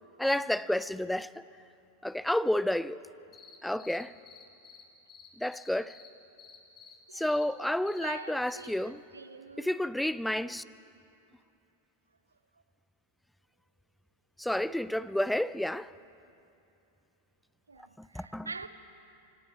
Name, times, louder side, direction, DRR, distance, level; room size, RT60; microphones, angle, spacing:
voice 1, 0.2-1.4 2.0-3.0 3.6-4.1 5.4-6.0 7.1-9.0 9.6-10.6 14.4-15.9 18.0-18.5, left 1 dB, 5° left, 0.5 m, -30 dB
sound 1, 3.3-4.8 5.1-6.1 6.4-6.9 7.2-7.4 7.9-8.1 8.5-8.7, left 7 dB, 30° left, 3.3 m, -52 dB
voice 2, 7.1-7.4 8.0-9.8 17.7-18.7, right 4 dB, 80° right, 1.0 m, -44 dB
29.5 x 25.5 x 4.2 m
figure-of-eight pair, 90°, 0 cm